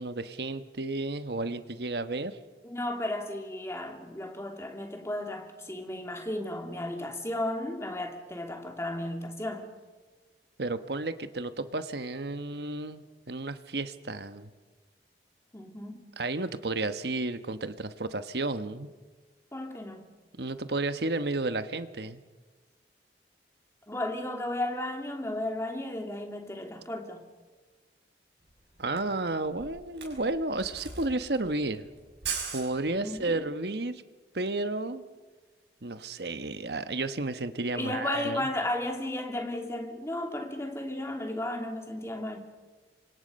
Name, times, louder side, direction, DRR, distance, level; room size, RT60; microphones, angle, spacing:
voice 1, 0.0-2.4 10.6-14.5 16.2-18.9 20.4-22.2 28.8-31.9 32.5-34.0 34.3-35.0 35.8-38.5, right 2 dB, 70° right, 11 dB, 1.2 m, -32 dB
voice 2, 2.6-9.7 15.5-16.0 19.5-20.1 23.9-27.2 33.0-33.4 37.7-42.4, left 1 dB, 15° left, 3 dB, 2.6 m, -34 dB
Camera, 28.5-28.6 28.8-33.3, right 6 dB, 85° right, 5.6 m, -39 dB
28.0 x 25.0 x 5.4 m, 1.3 s
head